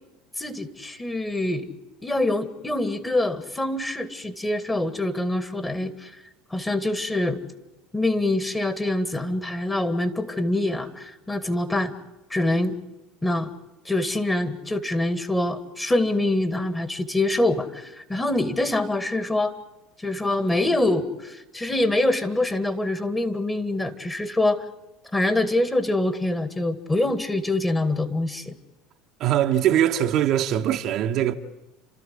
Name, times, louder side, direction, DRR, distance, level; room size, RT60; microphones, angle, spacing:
voice 1, 0.4-1.7 2.0-6.1 6.5-7.4 7.9-11.9 12.3-12.8 13.2-13.5 13.9-19.5 20.0-24.7 25.1-28.6, left 1 dB, 15° left, 2.1 m, -25 dB
voice 2, 29.2-31.3, right 11 dB, 55° right, 1.1 m, -22 dB
29.5 x 13.5 x 9.8 m
hypercardioid pair, 80°, 0 cm